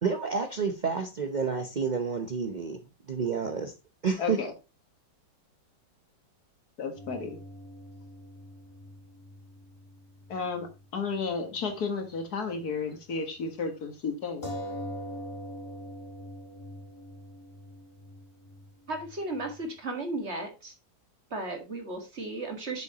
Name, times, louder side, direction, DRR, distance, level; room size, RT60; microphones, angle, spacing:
voice 1, 0.0-2.8 3.1-3.7 4.0-4.4, right 5 dB, 60° right, 0.4 m, -29 dB
voice 2, 4.2-4.5 6.8-7.4 10.3-14.5, left 4 dB, 60° left, 1.9 m, -33 dB
sound 1, 7.0-10.8 11.1-11.2 14.4-19.6, equal, 15° left, 1.7 m, -43 dB
voice 3, 18.9-20.7 21.3-22.8, right 2 dB, 40° right, 1.9 m, -35 dB
7.8 x 6.9 x 2.8 m
omnidirectional pair, 2.0 m